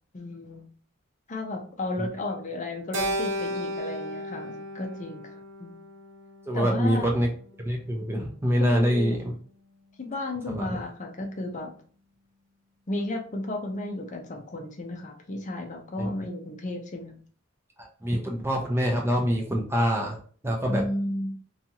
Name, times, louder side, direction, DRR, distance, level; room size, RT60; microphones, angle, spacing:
voice 1, 0.1-0.6 1.3-5.8 6.5-7.1 8.5-9.2 10.0-11.7 12.9-17.1 20.7-21.3, left 1 dB, 40° left, 3 dB, 0.5 m, -33 dB
Keyboard (musical), 2.9-7.3, equal, 65° right, 0.6 m, -34 dB
voice 2, 6.5-7.3 7.6-9.3 10.5-10.8 16.0-16.1 17.8-20.2 20.4-20.8, equal, 10° right, 0 dB, 0.5 m, -25 dB
2.8 x 2.3 x 2.7 m, 0.44 s
head